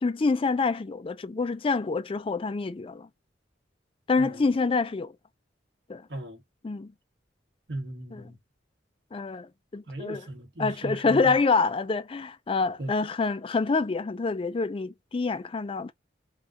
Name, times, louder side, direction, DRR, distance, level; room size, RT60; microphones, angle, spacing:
voice 1, 0.0-3.1 4.1-5.1 5.9-6.0 6.6-6.9 8.1-8.2 9.1-10.3 10.6-15.9, left 4 dB, 30° left, 0.4 m, -27 dB
voice 2, 6.1-6.4 7.7-8.4 9.9-11.3 12.8-12.9, right 1 dB, 65° right, 1.6 m, -36 dB
5.5 x 2.4 x 2.8 m
head